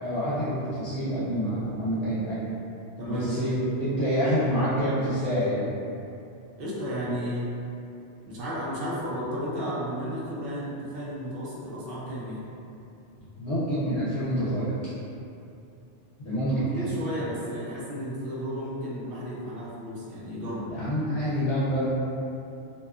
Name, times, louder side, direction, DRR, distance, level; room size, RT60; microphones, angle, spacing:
voice 1, 0.0-2.5 3.0-5.7 13.2-14.9 16.2-16.9 20.7-21.9, equal, 75° left, -11 dB, 0.9 m, -27 dB
voice 2, 3.0-3.9 6.6-7.5 8.2-12.4 16.5-20.7, equal, 60° right, -7 dB, 0.8 m, -33 dB
2.6 x 2.2 x 2.3 m, 2.7 s
omnidirectional pair, 1.2 m